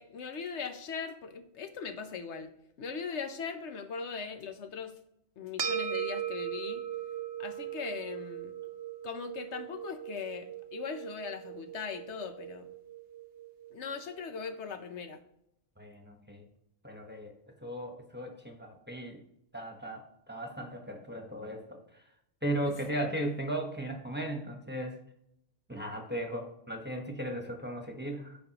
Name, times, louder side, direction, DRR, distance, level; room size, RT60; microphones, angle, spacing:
voice 1, 0.0-2.5 2.8-4.9 5.4-6.8 7.4-8.5 9.0-12.7 13.7-15.2 22.6-23.1, left 5 dB, 80° left, 7 dB, 1.1 m, -39 dB
sound 1, 5.6-14.2, right 9 dB, 85° right, 1.2 m, -39 dB
voice 2, 15.8-16.5 16.8-17.3 17.6-19.2 19.5-22.0 22.4-25.0 25.7-28.4, right 1 dB, 10° right, 2 dB, 1.1 m, -37 dB
14.0 x 5.2 x 3.0 m, 0.77 s
omnidirectional pair, 1.1 m